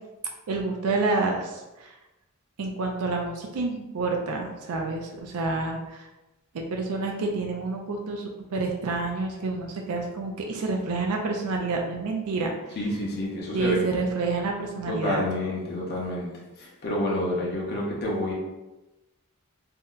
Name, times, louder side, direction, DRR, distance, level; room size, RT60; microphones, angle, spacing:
voice 1, 0.5-1.9 2.6-6.0 6.5-8.2 8.5-12.8 13.5-15.2, right 3 dB, 80° right, 1 dB, 0.5 m, -28 dB
voice 2, 12.8-13.8 14.9-16.3 16.6-18.3, left 1 dB, 50° left, -3 dB, 0.7 m, -28 dB
2.7 x 2.1 x 3.7 m, 1.0 s
head